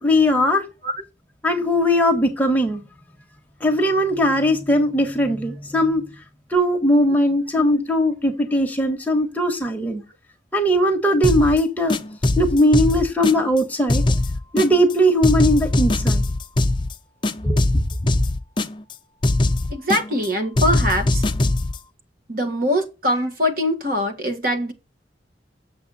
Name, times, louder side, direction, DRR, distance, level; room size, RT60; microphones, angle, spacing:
voice 1, 0.0-0.6 1.4-2.8 3.6-6.0 6.5-10.0 10.5-12.0 12.4-14.0 14.5-16.2 17.4-18.1, equal, 10° left, 1.4 m, -19 dB
voice 2, 7.6-7.9 19.7-21.2 22.3-24.7, equal, 50° right, 1.7 m, -23 dB
sound 1, 11.2-11.6 11.9-13.6 13.9-14.9 15.2-16.9 17.2-18.9 19.2-20.3 20.6-21.8, left 2 dB, 25° left, 0.5 m, -21 dB
7.7 x 7.1 x 4.2 m
head